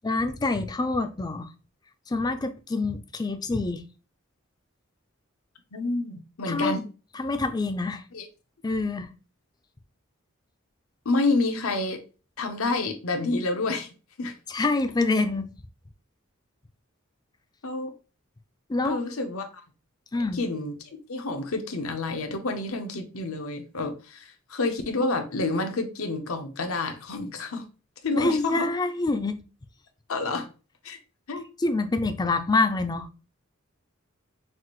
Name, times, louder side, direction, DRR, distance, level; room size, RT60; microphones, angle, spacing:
voice 1, 0.0-1.5 2.1-3.9 6.5-6.8 7.2-8.0 8.6-9.1 14.5-15.5 18.7-19.0 20.1-20.4 28.1-29.4 31.6-33.1, left 3 dB, 20° left, 0.4 m, -26 dB
voice 2, 5.7-6.9 8.1-8.3 11.0-12.0 12.4-14.3 17.6-17.9 18.8-19.5 20.3-20.8 21.1-27.7 28.0-28.7 30.1-30.5 30.8-31.0 31.3-31.4, left 3 dB, 85° left, 0.9 m, -29 dB
5.8 x 2.5 x 3.1 m
head